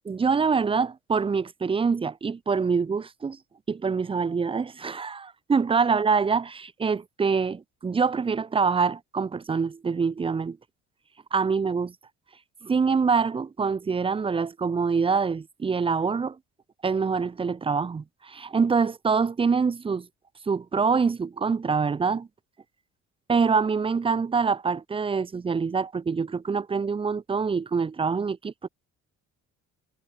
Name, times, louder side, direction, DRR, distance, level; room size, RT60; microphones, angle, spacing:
voice 1, 0.1-3.4 3.7-10.6 11.3-11.9 12.6-16.4 16.8-20.1 20.5-22.3 23.3-28.7, right 5 dB, 15° right, 0.4 m, -25 dB
hypercardioid pair, 55°, 36 cm